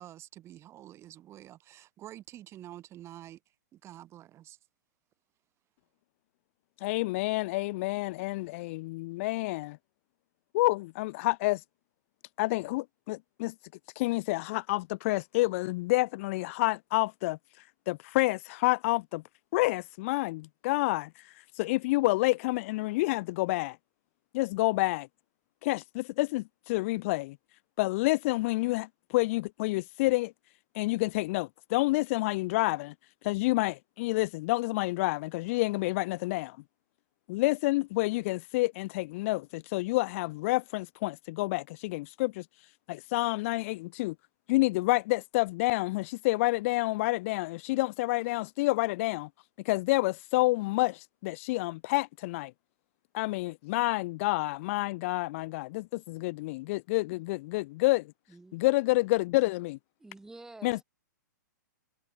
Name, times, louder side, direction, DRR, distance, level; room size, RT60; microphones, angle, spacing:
voice 1, 0.0-3.4 3.7-4.6, right 13 dB, 25° right, 5.5 m, -48 dB
voice 2, 6.8-9.8 10.5-11.6 12.4-13.5 13.9-17.4 17.9-19.2 19.5-23.8 24.3-25.1 25.6-27.4 27.8-30.3 30.7-32.9 33.2-36.6 37.3-42.4 42.9-44.1 44.5-49.3 49.6-52.5 53.1-58.1 58.5-59.8 60.6-60.8, left 21 dB, 45° left, 1.5 m, -29 dB
voice 3, 58.3-58.6 60.0-60.8, right 2 dB, 5° right, 7.8 m, -49 dB
hypercardioid pair, 120°, 10 cm